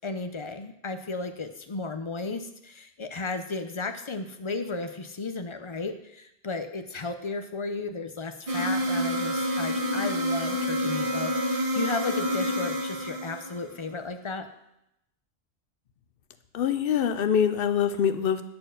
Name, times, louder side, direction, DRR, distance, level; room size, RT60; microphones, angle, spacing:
voice 1, 0.0-14.5, left 3 dB, 35° left, 8 dB, 0.5 m, -34 dB
sound 1, 8.5-13.8, equal, 35° right, 1.0 m, -28 dB
voice 2, 16.5-18.4, left 8 dB, 65° left, 11 dB, 0.8 m, -24 dB
8.6 x 4.4 x 6.4 m, 0.83 s
omnidirectional pair, 1.1 m